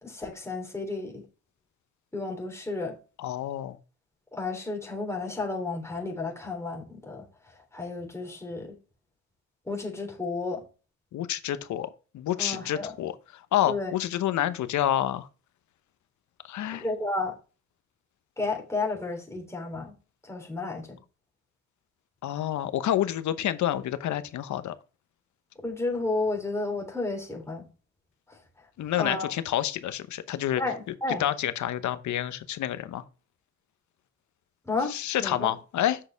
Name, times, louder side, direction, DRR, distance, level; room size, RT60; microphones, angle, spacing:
voice 1, 0.0-1.2 2.1-2.9 4.3-7.2 7.7-8.7 9.7-10.6 12.4-13.0 13.7-13.9 16.8-17.3 18.4-19.9 20.3-21.0 25.6-27.7 29.0-29.3 30.6-31.2 34.7-34.9 35.2-35.5, left 3 dB, 10° left, 3.4 m, -32 dB
voice 2, 3.2-3.8 11.1-15.3 16.4-16.9 22.2-24.7 28.8-30.6 31.2-33.0 34.9-36.0, left 12 dB, 70° left, 0.9 m, -28 dB
7.8 x 6.4 x 3.4 m
cardioid pair, 90°, 30 cm